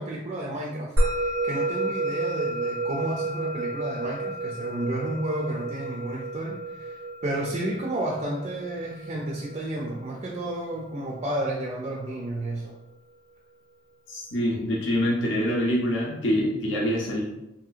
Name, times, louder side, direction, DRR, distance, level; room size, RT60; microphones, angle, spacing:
voice 1, 0.0-12.8, right 1 dB, 30° right, -1 dB, 0.3 m, -31 dB
Musical instrument, 1.0-11.6, right 2 dB, 90° right, 0.5 m, -31 dB
voice 2, 14.1-17.2, equal, 65° left, -3 dB, 0.6 m, -25 dB
3.0 x 2.7 x 2.4 m, 0.93 s
head